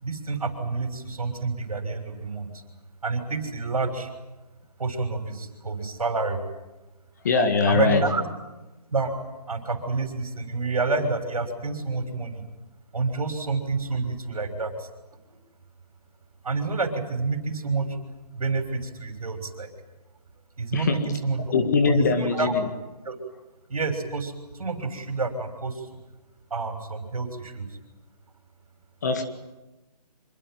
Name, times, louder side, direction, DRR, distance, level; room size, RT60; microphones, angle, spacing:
voice 1, 0.0-2.6 3.0-4.1 4.8-6.4 7.7-8.2 8.9-9.1 9.5-12.4 12.9-14.9 16.4-18.0 18.3-19.7 20.6-21.5 21.9-22.5 23.0-23.2 23.7-25.9 26.5-27.7, right 3 dB, 60° right, 8 dB, 6.4 m, -28 dB
voice 2, 7.2-8.0 20.7-21.2 21.5-22.5 29.0-29.2, left 4 dB, 25° left, 7 dB, 2.0 m, -22 dB
26.5 x 22.5 x 9.4 m, 1.0 s
hypercardioid pair, 175°, 20 cm